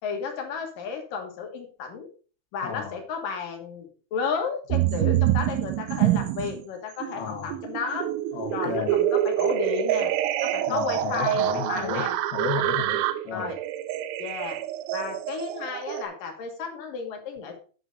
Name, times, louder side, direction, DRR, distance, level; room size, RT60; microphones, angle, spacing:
voice 1, 0.0-2.1 2.5-8.1 8.5-10.1 10.4-12.2 13.3-13.6 14.2-14.6 14.9-17.6, left 5 dB, 60° left, 3 dB, 2.5 m, -33 dB
sound 1, 4.7-6.6 7.0-16.0, right 13 dB, 80° right, 3.0 m, -26 dB
voice 2, 7.1-7.5 8.3-8.9 10.7-12.0 12.3-13.5, left 8 dB, 90° left, 6 dB, 4.0 m, -33 dB
9.1 x 8.1 x 3.9 m, 0.38 s
omnidirectional pair, 5.6 m